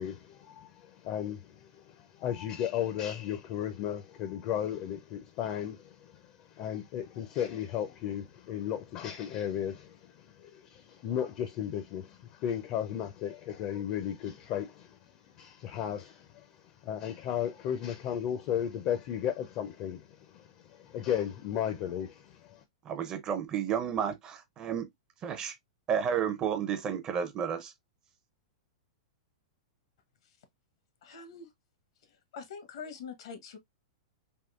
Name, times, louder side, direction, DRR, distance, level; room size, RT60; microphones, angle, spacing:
voice 1, 0.0-6.2 6.5-15.0 15.4-16.5 16.8-20.1 20.3-22.6, left 10 dB, 40° left, 0.4 m, -35 dB
voice 2, 22.9-24.9 25.2-25.5 25.9-27.7, right 8 dB, 25° right, 0.5 m, -31 dB
voice 3, 31.0-31.5 32.0-33.6, left 5 dB, 70° left, 0.8 m, -45 dB
3.5 x 2.3 x 2.3 m
hypercardioid pair, 145°, 3 cm